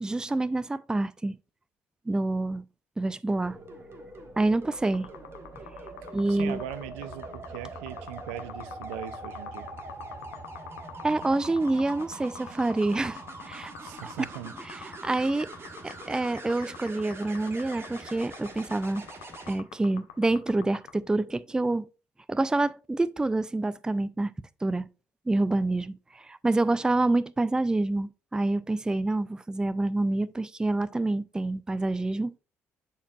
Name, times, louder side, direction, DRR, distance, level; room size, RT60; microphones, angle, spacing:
voice 1, 0.0-1.4 2.1-2.6 3.0-3.6 4.4-5.1 6.1-6.6 11.0-13.7 14.0-14.1 14.7-15.5 15.8-19.0 19.5-21.9 22.3-24.3 24.6-24.9 25.3-32.4, right 2 dB, 10° right, 0.3 m, -27 dB
sound 1, 3.4-19.6 21.5-21.7, right 2 dB, 35° right, 1.5 m, -43 dB
sound 2, 4.6-20.9, left 13 dB, 75° left, 0.6 m, -45 dB
voice 2, 6.3-9.7 13.8-14.5, right 12 dB, 75° right, 0.5 m, -40 dB
9.9 x 4.4 x 2.3 m
figure-of-eight pair, 45°, 7 cm